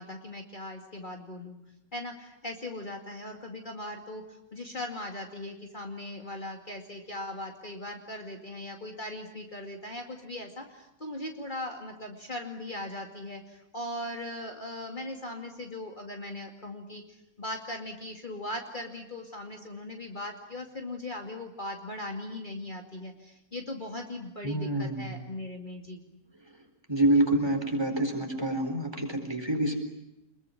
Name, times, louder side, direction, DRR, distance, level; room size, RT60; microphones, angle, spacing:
voice 1, 0.0-1.6 1.9-26.0, left 1 dB, 35° left, 3 dB, 2.6 m, -39 dB
voice 2, 24.4-25.1 26.9-29.7, right 1 dB, 15° right, 4 dB, 4.3 m, -27 dB
26.5 x 22.0 x 9.9 m, 0.86 s
omnidirectional pair, 1.5 m